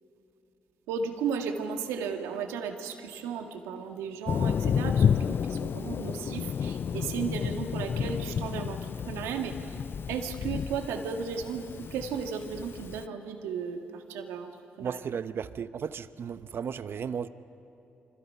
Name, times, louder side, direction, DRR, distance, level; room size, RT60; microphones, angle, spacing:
voice 1, 0.9-9.8 10.1-14.5 14.8-15.0 16.9-17.0, right 6 dB, 85° right, 1.8 m, -35 dB
Thunder, 4.3-13.0, left 7 dB, 55° left, 0.4 m, -30 dB
voice 2, 14.8-17.3, right 7 dB, 60° right, 0.8 m, -35 dB
28.5 x 25.5 x 5.6 m
supercardioid pair, 55°, 5 cm